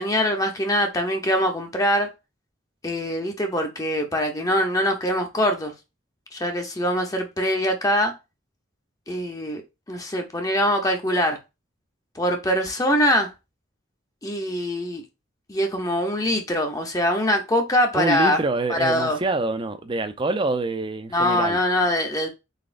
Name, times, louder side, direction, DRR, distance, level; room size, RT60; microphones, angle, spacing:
voice 1, 0.0-2.1 2.8-5.7 6.3-8.1 9.1-9.6 9.9-11.4 12.2-13.3 14.2-15.0 15.5-18.4 18.7-19.2 21.1-22.3, equal, 20° left, 0.7 m, -23 dB
voice 2, 17.9-21.6, right 2 dB, 25° right, 0.5 m, -26 dB
4.0 x 3.7 x 2.5 m
head